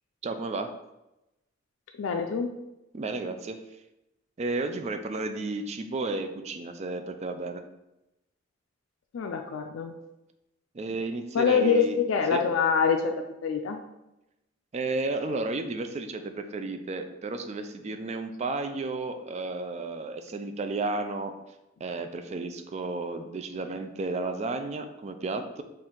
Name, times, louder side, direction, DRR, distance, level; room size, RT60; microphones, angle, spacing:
voice 1, 0.2-0.7 2.9-3.6 4.4-7.6 10.7-12.0 12.3-12.4 14.7-21.3 21.8-25.6, right 3 dB, 35° right, 7 dB, 0.4 m, -32 dB
voice 2, 2.0-2.5 9.1-9.9 11.3-13.1 13.4-13.8, left 6 dB, 80° left, 4 dB, 0.4 m, -25 dB
4.4 x 2.5 x 3.7 m, 0.92 s
head